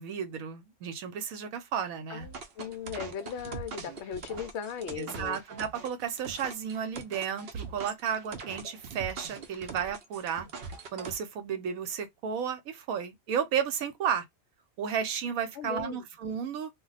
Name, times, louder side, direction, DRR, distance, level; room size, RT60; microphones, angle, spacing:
voice 1, 0.0-2.3 5.0-10.5 10.9-14.2 14.8-16.7, right 8 dB, 80° right, 1.1 m, -33 dB
voice 2, 2.1-5.4 15.6-16.1, left 7 dB, 65° left, 0.7 m, -38 dB
sound 1, 2.2-11.2, right 5 dB, 55° right, 0.7 m, -42 dB
2.4 x 2.1 x 3.9 m
omnidirectional pair, 1.5 m